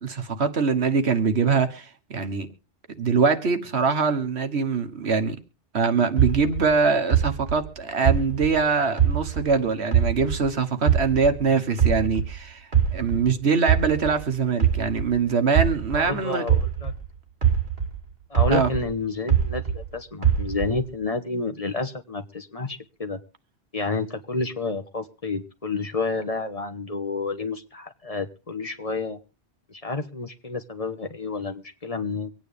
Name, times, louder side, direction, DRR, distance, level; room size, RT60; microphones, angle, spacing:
voice 1, 0.0-2.5 3.0-5.4 5.7-12.6 12.9-16.4 18.5-18.7, right 5 dB, 80° right, 1.6 m, -23 dB
sound 1, 6.2-9.6 9.9-12.4 12.7-17.1 17.4-19.9 20.2-20.9, right 8 dB, 60° right, 2.6 m, -23 dB
voice 2, 15.9-16.9 18.3-23.2 23.7-29.2 29.7-32.3, left 3 dB, 35° left, 1.2 m, -30 dB
24.5 x 9.3 x 3.4 m
omnidirectional pair, 1.1 m